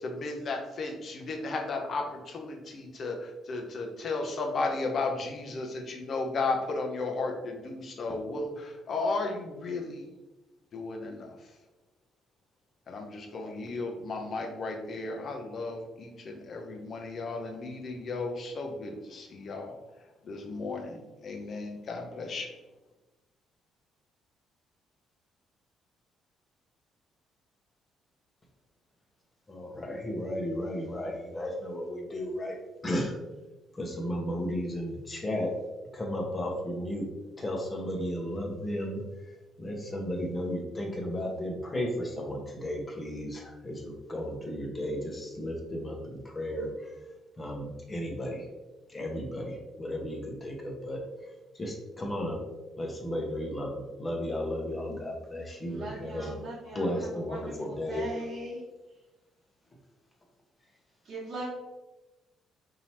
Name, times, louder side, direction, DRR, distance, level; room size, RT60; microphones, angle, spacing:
voice 1, 0.0-10.1 10.7-11.3 12.9-19.8 20.2-22.5, left 3 dB, 50° left, 2 dB, 0.7 m, -34 dB
voice 2, 29.5-32.6 32.8-33.2 33.7-35.5 35.9-37.1 37.4-48.5 48.9-52.4 52.8-56.3 56.7-58.0, equal, 30° left, 0 dB, 1.0 m, -34 dB
voice 3, 55.7-58.6 61.0-61.5, right 1 dB, 55° right, -10 dB, 1.2 m, -40 dB
4.0 x 2.9 x 2.9 m, 1.1 s
hypercardioid pair, 45°, 0 cm